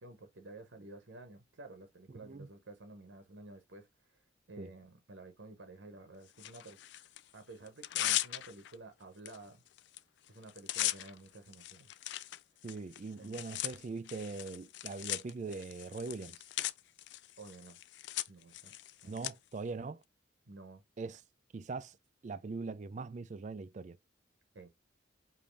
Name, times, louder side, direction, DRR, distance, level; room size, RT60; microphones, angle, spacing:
voice 1, 0.0-3.9 4.5-6.8 7.3-9.6 10.3-11.9 13.2-13.4 17.4-17.8 18.3-19.2 20.5-20.8 24.5-24.7, right 2 dB, 65° right, 0.8 m, -52 dB
voice 2, 2.1-2.5 4.6-4.7 12.6-16.4 19.0-20.0 21.0-21.2 21.5-22.0 22.2-24.0, right 4 dB, 35° right, 0.3 m, -41 dB
Tearing, 6.4-7.2 7.7-8.7 9.3-9.4 9.7-10.0 10.3-19.3, left 15 dB, 60° left, 0.3 m, -39 dB
5.2 x 2.7 x 3.2 m
head